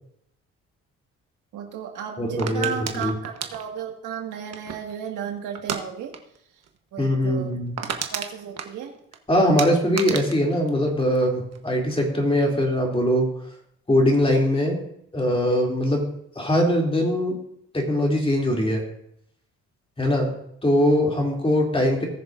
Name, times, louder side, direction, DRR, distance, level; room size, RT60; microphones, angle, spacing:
voice 1, 1.5-6.1 6.9-7.6 8.1-8.9, right 8 dB, 90° right, 2 dB, 1.9 m, -34 dB
voice 2, 2.2-3.1 7.0-7.8 9.3-13.3 13.9-14.8 15.1-16.0 16.3-17.4 17.7-18.8 20.0-20.3 20.6-22.1, equal, 20° left, -1 dB, 2.9 m, -21 dB
sound 1, 2.4-5.0 5.6-5.8 6.1-6.4 6.6-6.7 7.1-7.2 7.5-9.2 9.6-11.6 11.9-12.4, right 7 dB, 55° right, 1.2 m, -32 dB
18.5 x 6.6 x 2.6 m, 0.72 s
cardioid pair, 90°, 30 cm